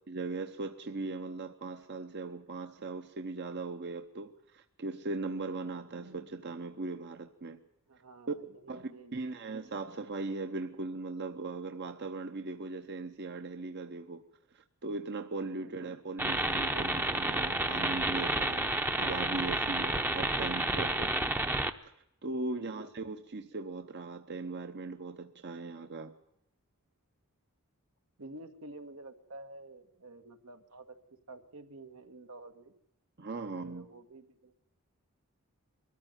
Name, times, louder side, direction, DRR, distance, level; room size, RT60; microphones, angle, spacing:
voice 1, 0.1-7.6 8.3-8.4 8.7-14.2 14.5-21.1 21.8-21.9 22.2-26.1 33.2-33.9, right 3 dB, 50° right, 0.9 m, -39 dB
voice 2, 7.9-9.4 15.5-16.0 22.5-22.9 28.2-32.7 33.3-34.6, right 2 dB, 85° right, 1.8 m, -50 dB
sound 1, 16.2-21.7, right 1 dB, 10° right, 0.7 m, -30 dB
21.5 x 14.0 x 9.2 m
head